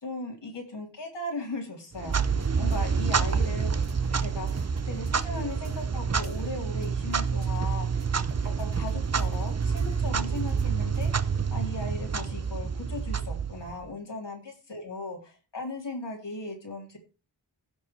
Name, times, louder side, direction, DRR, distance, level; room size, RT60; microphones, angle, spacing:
voice 1, 0.0-2.2 2.6-3.7 4.2-8.0 8.6-11.1 11.5-14.4 14.7-17.0, left 2 dB, 80° left, 0 dB, 3.7 m, -37 dB
Clock, 1.9-13.9, right 6 dB, 35° right, 0.7 m, -28 dB
sound 1, 2.1-11.6 11.9-12.0, right 2 dB, 85° right, 3.4 m, -45 dB
16.0 x 5.5 x 4.6 m, 0.33 s
wide cardioid pair, 90°, 42 cm